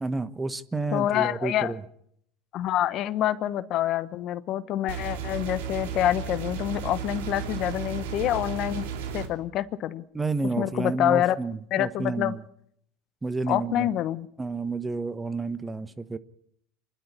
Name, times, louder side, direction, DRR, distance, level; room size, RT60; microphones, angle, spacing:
voice 1, 0.0-1.8 10.1-12.4 13.2-13.9 14.4-16.2, right 3 dB, 15° right, 1.2 m, -30 dB
voice 2, 0.9-1.7 2.5-8.9 9.1-10.0 10.6-11.4 11.7-12.3 13.5-14.3, left 12 dB, 55° left, 1.0 m, -26 dB
sound 1, 4.9-9.3, right 6 dB, 80° right, 3.0 m, -34 dB
25.5 x 11.5 x 9.8 m
hypercardioid pair, 90°, 0 cm